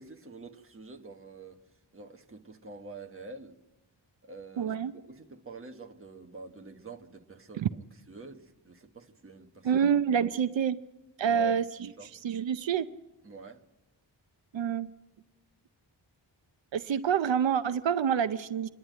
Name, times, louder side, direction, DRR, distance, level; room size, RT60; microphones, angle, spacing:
voice 1, 0.0-1.6 1.9-3.6 4.2-7.7 8.1-9.8 11.2-11.6 11.8-12.1 13.2-13.6, right 2 dB, 30° right, 1.3 m, -47 dB
voice 2, 4.6-4.9 7.6-7.7 9.6-10.8 11.2-11.9 12.2-12.9 14.5-14.9 16.7-18.7, right 8 dB, 80° right, 0.7 m, -27 dB
26.5 x 11.0 x 9.2 m
wide cardioid pair, 150°, 44 cm